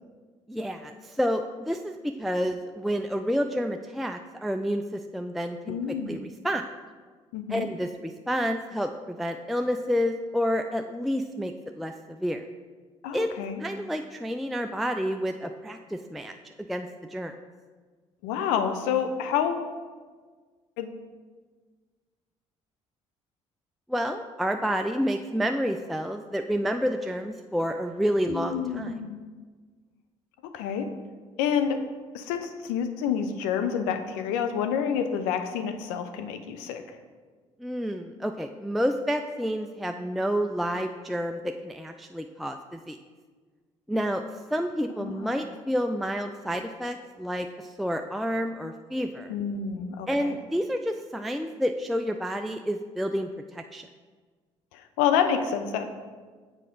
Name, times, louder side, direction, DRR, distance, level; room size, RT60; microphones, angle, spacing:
voice 1, 0.5-5.8 6.1-6.6 7.5-12.5 13.1-13.3 13.6-17.3 23.9-29.0 37.6-43.0 43.9-44.2 44.5-49.4 50.1-53.9, equal, ahead, 6 dB, 0.3 m, -29 dB
voice 2, 5.7-6.2 7.3-7.7 13.0-13.6 18.2-19.7 20.8-21.0 28.3-29.2 30.5-30.9 31.4-31.8 32.1-36.8 45.0-45.4 49.3-50.3 54.7-55.9, left 7 dB, 70° left, 7 dB, 0.6 m, -28 dB
7.4 x 5.0 x 3.8 m, 1.5 s
figure-of-eight pair, 50°, 17 cm